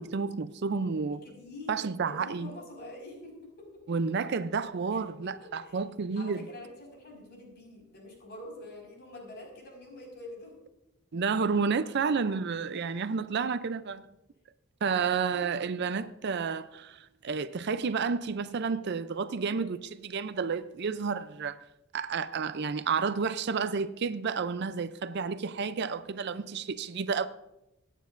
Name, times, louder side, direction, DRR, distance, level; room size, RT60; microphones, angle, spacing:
voice 1, 0.0-1.2 1.7-2.5 3.9-6.4 11.1-14.1 14.8-21.7 21.9-27.3, right 5 dB, 55° right, 0.5 m, -31 dB
voice 2, 1.0-3.8 4.9-5.8 6.1-10.6 14.8-15.2, left 1 dB, 50° left, 5.0 m, -46 dB
24.0 x 9.3 x 2.6 m
head